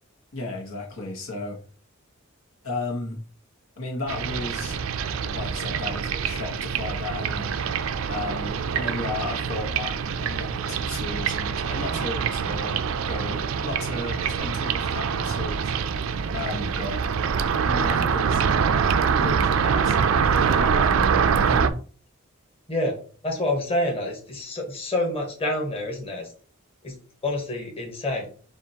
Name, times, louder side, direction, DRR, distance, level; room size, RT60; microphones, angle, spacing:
voice 1, 0.3-1.6 2.6-3.2 3.8-7.6 8.1-15.7 16.3-17.0 17.6-18.9 19.1-21.8, left 3 dB, 85° left, -1 dB, 1.2 m, -34 dB
sound 1, 4.1-21.7, right 6 dB, 85° right, 0.4 m, -25 dB
voice 2, 23.2-26.3 26.8-26.9 27.2-28.3, left 1 dB, 30° left, -1 dB, 1.3 m, -27 dB
6.9 x 2.5 x 2.8 m, 0.41 s
head